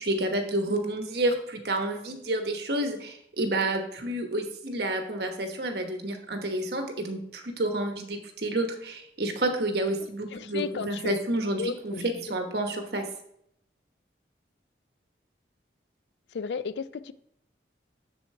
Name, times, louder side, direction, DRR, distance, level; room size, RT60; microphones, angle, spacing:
voice 1, 0.0-13.0, right 1 dB, 60° right, 4 dB, 1.1 m, -29 dB
voice 2, 10.3-11.2 11.6-12.1 16.3-17.1, left 6 dB, 70° left, 15 dB, 0.4 m, -33 dB
7.1 x 7.0 x 3.3 m, 0.73 s
head